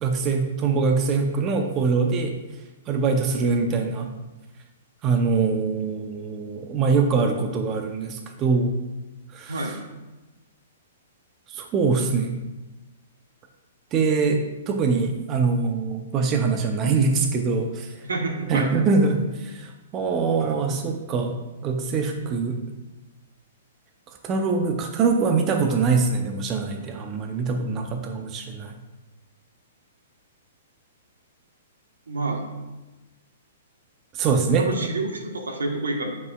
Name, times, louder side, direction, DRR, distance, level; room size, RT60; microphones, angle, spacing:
voice 1, 0.0-2.3 2.9-4.1 5.0-8.7 9.3-9.7 11.5-12.4 13.9-18.0 18.5-21.4 21.6-22.6 24.2-28.7 34.1-34.9, right 4 dB, 30° right, 4 dB, 0.6 m, -23 dB
voice 2, 9.5-9.8 18.0-18.8 32.1-32.4 34.6-36.1, right 2 dB, 85° right, 2 dB, 1.2 m, -28 dB
9.2 x 5.2 x 2.3 m, 1.1 s
hypercardioid pair, 125°, 0 cm